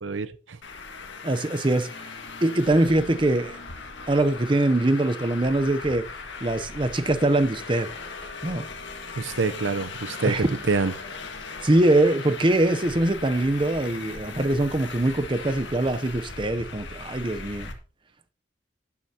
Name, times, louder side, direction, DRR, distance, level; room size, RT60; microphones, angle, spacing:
voice 1, 0.0-0.6 9.2-10.9, right 4 dB, 85° right, 0.7 m, -27 dB
Traffic noise roadway noise, 0.6-17.7, left 4 dB, 75° left, 1.7 m, -39 dB
voice 2, 1.2-2.1 2.4-3.6 4.1-6.1 6.4-7.9 8.4-8.7 10.2-10.5 11.6-17.7, right 1 dB, 25° right, 0.6 m, -23 dB
12.0 x 9.5 x 2.8 m
head